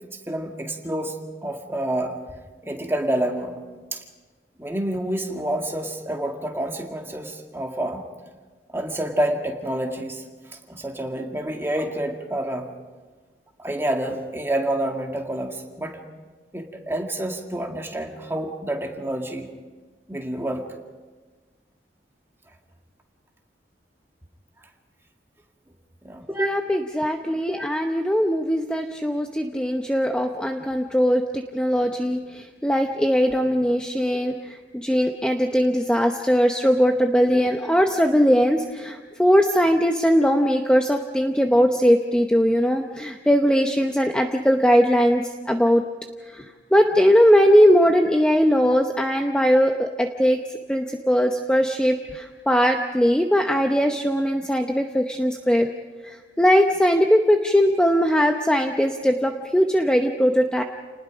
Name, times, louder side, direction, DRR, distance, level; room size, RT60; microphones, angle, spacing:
voice 1, 0.3-1.2 1.4-2.2 2.6-3.6 3.9-4.0 4.6-8.1 8.7-12.7 13.6-16.0 16.5-19.5 20.1-20.8 26.0-26.5, right 1 dB, 15° right, 2 dB, 2.1 m, -28 dB
voice 2, 26.4-45.8 46.3-50.4 50.7-55.7 56.0-60.6, equal, 5° left, 4 dB, 0.8 m, -20 dB
29.5 x 20.0 x 5.1 m, 1.4 s
head